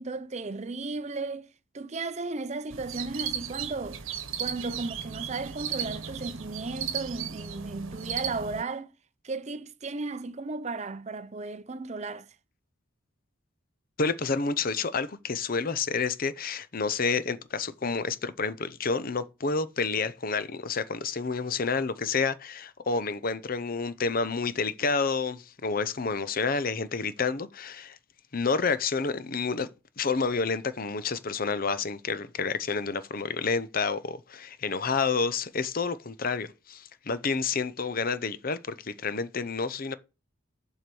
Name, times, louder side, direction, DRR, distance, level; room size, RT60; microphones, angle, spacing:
voice 1, 0.0-1.5 1.7-4.0 4.4-8.9 9.2-12.3, right 3 dB, 35° right, 0.5 m, -35 dB
sound 1, 2.7-8.6, right 8 dB, 75° right, 1.1 m, -35 dB
voice 2, 14.0-28.0 28.3-29.7 30.0-40.0, left 4 dB, 45° left, 0.7 m, -29 dB
7.7 x 4.5 x 6.9 m
head